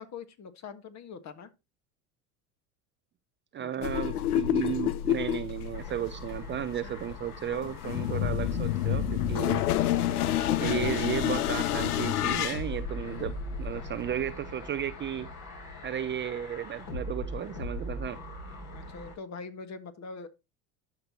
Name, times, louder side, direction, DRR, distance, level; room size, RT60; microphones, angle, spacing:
voice 1, 0.0-1.5 3.6-3.9 6.5-6.9 9.8-10.7 18.7-20.3, left 5 dB, 40° left, 1.6 m, -44 dB
voice 2, 3.5-9.6 10.6-15.3 15.8-18.2, right 10 dB, 25° right, 0.5 m, -34 dB
sound 1, 3.8-14.3, left 12 dB, 90° left, 0.7 m, -29 dB
sound 2, 5.7-19.2, left 1 dB, 55° left, 3.9 m, -40 dB
11.5 x 6.0 x 2.9 m
hypercardioid pair, 85°, 44 cm